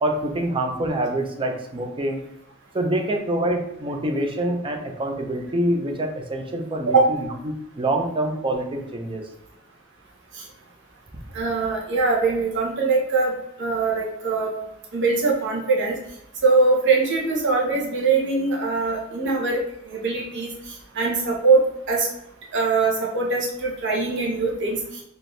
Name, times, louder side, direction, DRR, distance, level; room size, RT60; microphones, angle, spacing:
voice 1, 0.0-2.2 2.7-9.2, right 1 dB, 25° right, 3 dB, 0.5 m, -26 dB
voice 2, 11.3-13.3 13.6-14.5 14.9-16.0 16.4-19.6 19.9-20.5 20.9-21.6 21.9-22.1 22.5-24.8, right 4 dB, 60° right, -2 dB, 0.9 m, -22 dB
4.4 x 2.6 x 3.2 m, 0.84 s
head